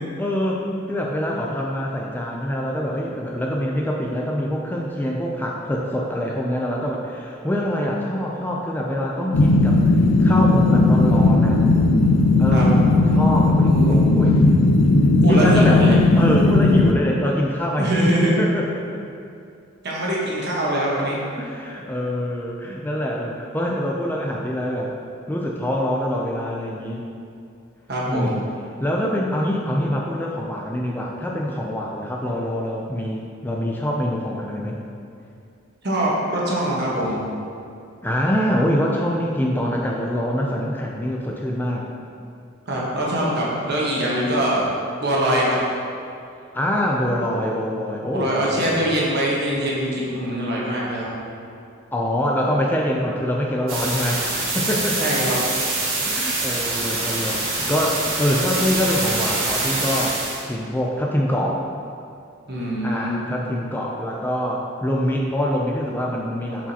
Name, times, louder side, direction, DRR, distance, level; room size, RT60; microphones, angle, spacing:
voice 1, 0.2-11.6 12.4-14.4 15.3-15.9 16.2-19.0 21.4-24.9 25.3-27.1 28.0-28.4 28.8-34.8 38.0-41.9 46.5-49.0 51.9-54.2 54.5-55.0 56.0-60.2 60.5-61.6 62.8-66.7, equal, 10° left, -2 dB, 0.3 m, -24 dB
sound 1, 9.3-16.9, left 2 dB, 85° left, 0.4 m, -16 dB
voice 2, 13.7-14.0 15.2-16.0 17.8-18.3 19.8-21.2 27.9-28.4 35.8-37.2 42.7-44.6 45.0-45.6 48.1-51.1 55.0-55.4 62.5-63.2, right 1 dB, 55° right, -5 dB, 1.2 m, -23 dB
sound 2, 53.7-60.4, right 2 dB, 75° right, 1.4 m, -25 dB
7.0 x 4.9 x 2.8 m, 2.5 s
head